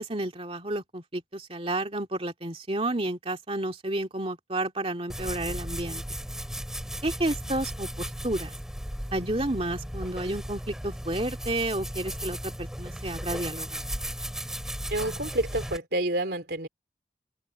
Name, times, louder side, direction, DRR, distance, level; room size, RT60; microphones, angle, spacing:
voice 1, 0.0-6.0 7.0-8.5 9.1-13.8, right 1 dB, 30° right, 2.4 m, -31 dB
sound 1, 5.1-15.8, equal, 5° right, 4.5 m, -36 dB
voice 2, 14.9-16.7, right 1 dB, 55° right, 3.6 m, -29 dB
head